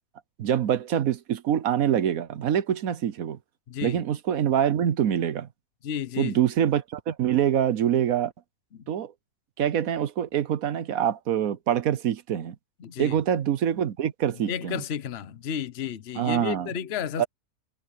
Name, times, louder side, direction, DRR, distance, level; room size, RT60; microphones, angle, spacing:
voice 1, 0.4-3.4 3.8-5.5 6.2-8.3 8.9-9.1 9.6-12.6 13.0-14.8 16.2-16.7 17.2-17.3, right 9 dB, 65° right, 1.2 m, -25 dB
voice 2, 3.7-4.0 5.8-6.4 8.7-8.8 12.8-13.2 14.5-17.3, left 8 dB, 50° left, 1.0 m, -32 dB
omnidirectional pair, 1.6 m